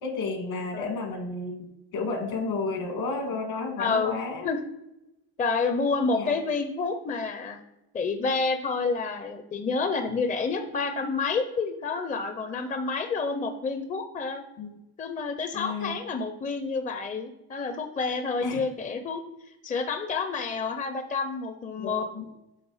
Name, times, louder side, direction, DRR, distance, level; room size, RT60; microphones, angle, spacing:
voice 1, 0.0-1.6 1.9-4.5 6.1-6.4 14.6-14.7 15.5-16.0 18.4-18.7 21.8-22.2, left 3 dB, 65° left, 4 dB, 1.8 m, -32 dB
voice 2, 3.8-4.2 4.4-4.6 5.4-7.6 7.9-14.4 15.0-19.2 19.6-22.2, left 4 dB, 20° left, 7 dB, 0.5 m, -29 dB
7.9 x 3.4 x 4.9 m, 0.88 s
cardioid pair, 105°, 40 cm